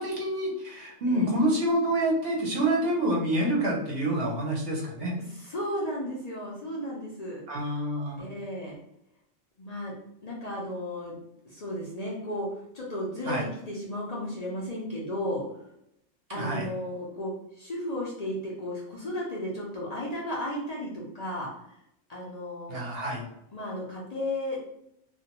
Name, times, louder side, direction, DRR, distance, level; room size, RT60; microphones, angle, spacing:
voice 1, 0.0-5.1 7.5-8.2 13.3-13.5 16.3-16.7 22.7-23.2, right 1 dB, 60° right, -2 dB, 0.9 m, -27 dB
voice 2, 5.2-7.4 8.2-8.8 9.6-9.9 10.2-11.2 11.4-15.4 16.3-21.8 22.1-22.8 23.5-24.6, left 1 dB, 50° left, -4 dB, 0.5 m, -34 dB
2.5 x 2.1 x 2.9 m, 0.78 s
omnidirectional pair, 1.2 m